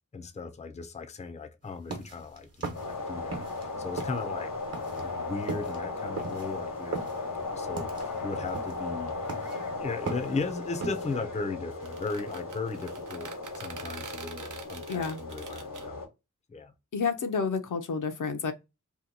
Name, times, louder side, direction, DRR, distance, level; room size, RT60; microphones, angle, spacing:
voice 1, 0.1-4.5 4.9-9.1 9.8-16.0 16.5-16.7, left 4 dB, 20° left, 0.4 m, -37 dB
sound 1, 1.7-3.7 3.9-11.1, right 3 dB, 50° right, 1.0 m, -38 dB
sound 2, 2.7-16.1, left 3 dB, 90° left, 1.1 m, -36 dB
sound 3, 11.7-15.9, right 5 dB, 75° right, 0.6 m, -45 dB
voice 2, 14.9-15.2 16.9-18.5, left 5 dB, 70° left, 0.6 m, -30 dB
2.8 x 2.2 x 3.8 m
wide cardioid pair, 95°, 32 cm